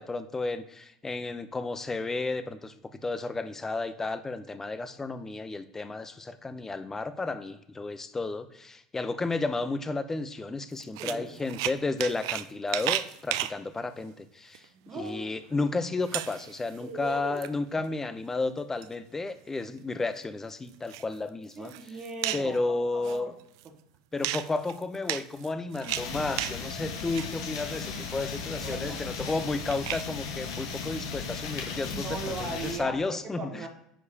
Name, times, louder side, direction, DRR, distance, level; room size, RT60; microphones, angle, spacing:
voice 1, 0.0-14.7 14.9-21.7 22.3-23.3 24.1-33.6, left 3 dB, 15° left, 11 dB, 0.6 m, -32 dB
sound 1, 10.8-12.5 12.7-13.5 14.5-14.6 15.1-15.2 15.6-15.7 16.0-16.8 17.1-17.5 18.3-18.9 19.3-19.4 19.8-19.9 20.7-21.1 21.5-22.6 23.0-23.7 24.2-26.6 26.9-27.4 27.8-30.1, right 14 dB, 70° right, 0.3 m, -34 dB
voice 2, 11.0-11.4 14.7-15.4 16.8-17.4 21.5-23.4 28.6-29.0 31.9-33.7, right 3 dB, 40° right, 3 dB, 1.2 m, -38 dB
sound 2, 25.9-32.8, left 5 dB, 70° left, 1.2 m, -36 dB
9.9 x 4.7 x 2.8 m, 0.79 s
hypercardioid pair, 75°, 2 cm